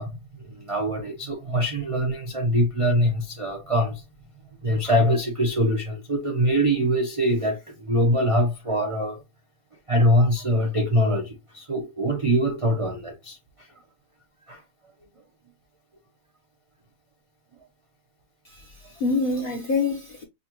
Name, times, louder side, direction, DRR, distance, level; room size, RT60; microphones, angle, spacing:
voice 1, 0.0-4.0 4.6-9.2 9.9-13.7 14.5-14.6, equal, 55° right, 0.3 m, -23 dB
voice 2, 18.4-20.2, left 3 dB, 50° left, 0.6 m, -26 dB
5.3 x 2.2 x 2.9 m
omnidirectional pair, 1.8 m